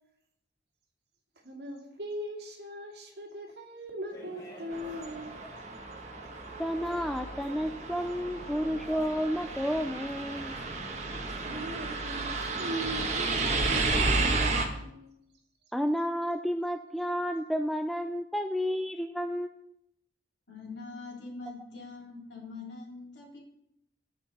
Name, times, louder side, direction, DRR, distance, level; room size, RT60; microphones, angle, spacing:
voice 1, 1.4-5.4 11.4-15.2, equal, 60° right, 0 dB, 2.4 m, -40 dB
sound 1, 4.1-12.0, right 2 dB, 20° left, 3.0 m, -49 dB
sound 2, 4.7-14.6, right 3 dB, 35° right, 1.5 m, -32 dB
voice 2, 6.6-10.6 15.7-19.7, equal, ahead, 6 dB, 0.3 m, -31 dB
voice 3, 20.5-23.4, left 3 dB, 75° left, -1 dB, 3.4 m, -43 dB
18.0 x 6.0 x 4.2 m, 0.77 s
head